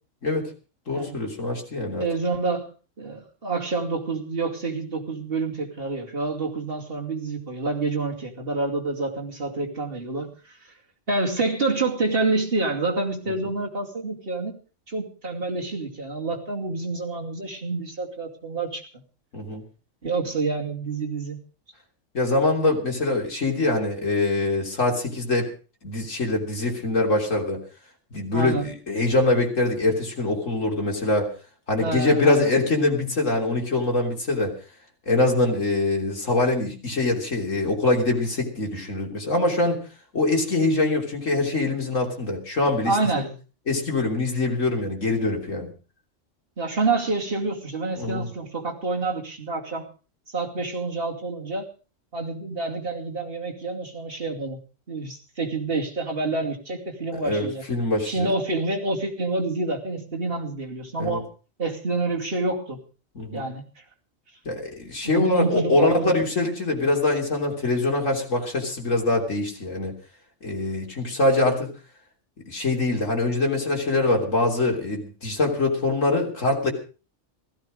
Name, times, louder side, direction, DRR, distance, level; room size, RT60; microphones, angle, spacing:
voice 1, 0.9-2.1 19.3-19.6 22.1-25.5 25.8-27.6 28.1-31.3 31.7-34.5 35.1-39.9 40.1-43.3 43.7-45.7 48.0-48.3 57.2-58.3 61.0-61.2 63.2-63.5 64.5-69.9 70.4-71.7 72.5-76.7, left 2 dB, 85° left, 1 dB, 3.7 m, -23 dB
voice 2, 2.0-2.7 3.0-10.3 11.1-14.5 14.9-18.8 20.0-21.4 28.3-28.7 31.8-32.5 42.8-43.3 46.6-49.9 50.3-51.6 52.1-54.6 54.9-57.6 58.0-61.3 61.6-62.8 63.3-63.6 65.0-66.1, right 3 dB, 50° right, 1 dB, 2.9 m, -27 dB
16.0 x 14.5 x 5.1 m, 0.36 s
omnidirectional pair, 1.3 m